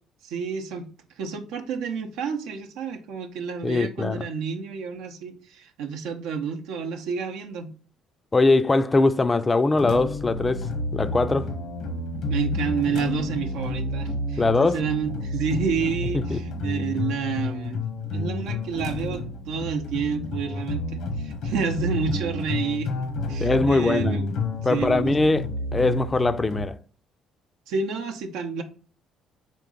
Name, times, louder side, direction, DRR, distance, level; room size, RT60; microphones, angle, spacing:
voice 1, 0.2-0.9 1.2-7.7 12.3-17.8 18.1-24.3 24.7-25.2 27.7-28.6, right 6 dB, 75° right, 0.6 m, -29 dB
voice 2, 3.6-4.3 8.3-11.5 14.4-14.8 16.1-16.4 23.4-24.2 24.6-25.4 25.7-26.8, left 3 dB, 25° left, 0.4 m, -21 dB
sound 1, 9.7-26.7, left 2 dB, 75° left, 0.9 m, -30 dB
4.5 x 3.1 x 3.7 m
hypercardioid pair, 60°, 0 cm